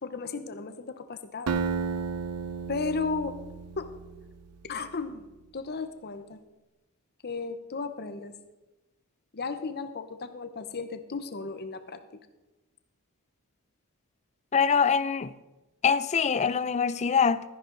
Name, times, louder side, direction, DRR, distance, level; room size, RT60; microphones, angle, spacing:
voice 1, 0.0-1.6 2.7-3.4 3.8-3.9 4.6-5.2 5.5-6.4 7.2-8.3 9.3-12.0, left 4 dB, 45° left, 0.8 m, -34 dB
Acoustic guitar, 1.5-4.5, right 5 dB, 85° right, 0.6 m, -33 dB
voice 2, 14.5-15.3 15.8-17.4, left 6 dB, 30° left, 0.4 m, -24 dB
13.0 x 10.5 x 3.9 m
head